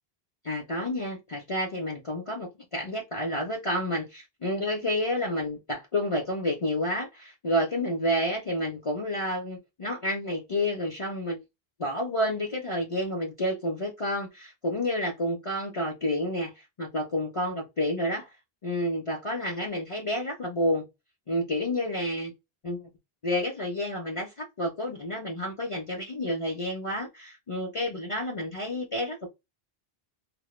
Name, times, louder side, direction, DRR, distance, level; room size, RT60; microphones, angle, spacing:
voice 1, 0.4-11.4 11.8-18.3 18.6-20.8 21.3-22.3 22.6-22.9 23.2-29.3, left 1 dB, 40° left, 0.5 m, -30 dB
2.0 x 2.0 x 3.0 m
omnidirectional pair, 1.0 m